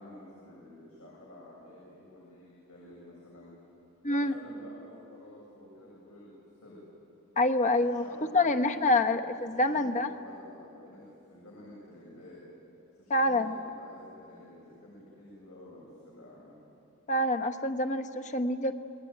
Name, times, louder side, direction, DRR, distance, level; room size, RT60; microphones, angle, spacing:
voice 1, 0.0-3.6 4.0-6.3 6.6-6.8 7.8-8.6 8.9-11.0 11.3-12.4 13.0-16.6, left 1 dB, 85° left, -6 dB, 7.5 m, -51 dB
voice 2, 4.0-4.4 7.4-8.0 8.3-10.1 13.1-13.6 17.1-18.7, left 2 dB, 35° left, 6 dB, 1.1 m, -26 dB
28.0 x 20.5 x 9.2 m, 2.8 s
head